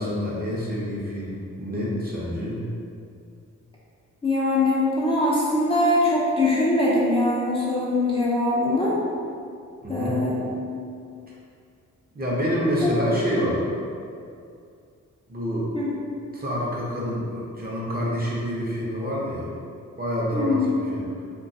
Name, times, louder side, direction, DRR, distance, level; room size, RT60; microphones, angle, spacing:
voice 1, 0.0-2.6 9.8-10.2 12.1-13.6 15.3-15.7 16.3-19.5 20.0-20.6 20.9-21.1, equal, 30° right, -5 dB, 0.6 m, -27 dB
voice 2, 4.2-8.9 9.9-10.6 12.8-12.9 15.7-15.9 20.3-20.8, left 2 dB, 20° left, -8 dB, 0.4 m, -22 dB
2.3 x 2.2 x 2.6 m, 2.4 s
cardioid pair, 80°, 32 cm